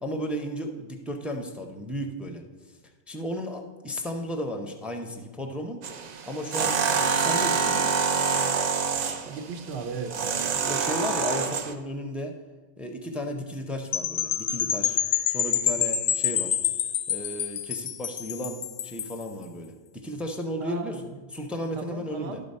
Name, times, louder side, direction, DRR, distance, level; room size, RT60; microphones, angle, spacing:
voice 1, 0.0-2.4 3.1-5.8 6.3-8.0 10.7-12.3 12.8-15.0 15.3-16.6 17.1-21.0 21.3-22.4, equal, ahead, 4 dB, 0.5 m, -34 dB
sound 1, 5.8-11.7, right 5 dB, 50° right, 0.5 m, -26 dB
voice 2, 9.2-10.2 20.6-21.0 21.7-22.4, right 4 dB, 70° right, 6 dB, 1.1 m, -36 dB
sound 2, 13.9-19.2, left 9 dB, 60° left, 0.7 m, -27 dB
12.0 x 4.0 x 5.3 m, 1.3 s
omnidirectional pair, 1.1 m